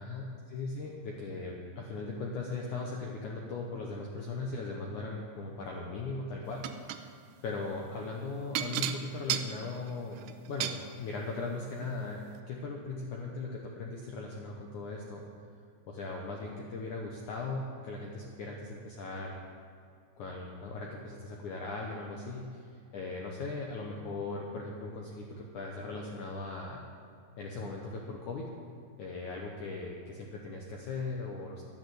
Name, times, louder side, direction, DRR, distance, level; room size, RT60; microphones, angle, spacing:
voice 1, 0.0-7.1 7.4-15.3 15.9-19.4 20.2-22.7 22.9-26.8 27.4-28.4 29.0-31.6, left 3 dB, 85° left, -1 dB, 1.7 m, -38 dB
sound 1, 6.6-7.0 8.6-10.8 11.8-11.9 12.4-12.5, right 11 dB, 80° right, 2.5 m, -34 dB
12.0 x 10.5 x 7.8 m, 2.4 s
omnidirectional pair, 5.2 m